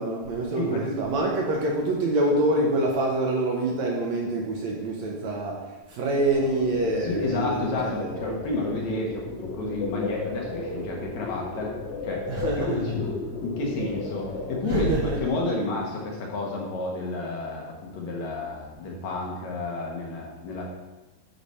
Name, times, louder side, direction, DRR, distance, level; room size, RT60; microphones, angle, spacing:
voice 1, 0.0-8.2 12.3-12.9 14.6-15.2, right 2 dB, 65° right, -1 dB, 2.0 m, -26 dB
sound 1, 6.3-14.6, left 3 dB, 90° left, 1.0 m, -35 dB
voice 2, 7.0-11.8 12.0-12.3 12.6-13.1 13.4-20.6, left 2 dB, 65° left, -2 dB, 2.2 m, -30 dB
10.5 x 4.9 x 4.3 m, 1.1 s
omnidirectional pair, 3.9 m